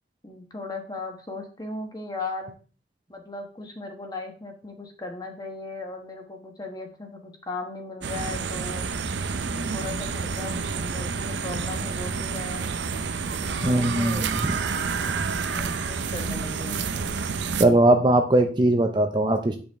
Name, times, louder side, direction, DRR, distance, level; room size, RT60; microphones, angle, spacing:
voice 1, 0.2-2.5 3.1-9.1 9.7-12.7 13.4-14.3 15.5-17.0, left 2 dB, 20° left, 3 dB, 1.2 m, -37 dB
sound 1, 8.0-17.7, right 5 dB, 75° right, 0.6 m, -29 dB
voice 2, 13.6-14.6 17.6-19.6, right 1 dB, 25° right, 5 dB, 0.5 m, -20 dB
8.6 x 5.3 x 3.5 m, 0.39 s
head